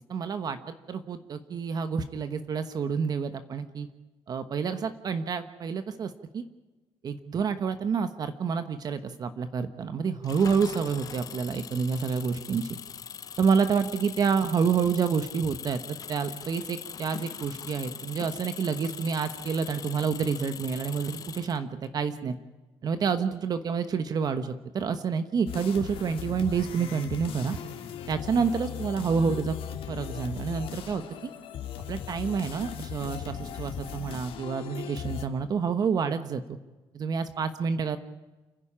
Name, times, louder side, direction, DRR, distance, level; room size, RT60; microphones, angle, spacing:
voice 1, 0.1-3.9 4.3-6.4 7.0-12.8 13.4-15.8 16.1-22.4 22.8-27.6 28.1-29.6 29.9-31.3 31.9-36.4 36.9-38.0, right 6 dB, 40° right, 10 dB, 1.2 m, -28 dB
Engine, 10.2-21.9, left 8 dB, 35° left, 0.7 m, -41 dB
sound 1, 25.5-35.3, left 9 dB, 65° left, 2.3 m, -38 dB
29.0 x 11.0 x 8.7 m, 1.1 s
cardioid pair, 160°, 10 cm